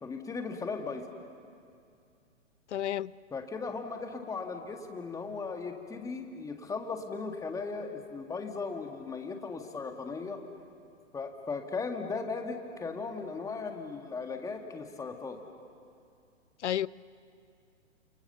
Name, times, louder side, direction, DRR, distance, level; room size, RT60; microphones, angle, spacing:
voice 1, 0.0-1.1 3.3-10.4 11.1-15.4, left 4 dB, 10° left, 4 dB, 1.8 m, -37 dB
voice 2, 2.7-3.1 16.6-16.9, left 11 dB, 65° left, 22 dB, 0.6 m, -30 dB
29.0 x 28.0 x 7.1 m, 2.4 s
figure-of-eight pair, 125°, 37 cm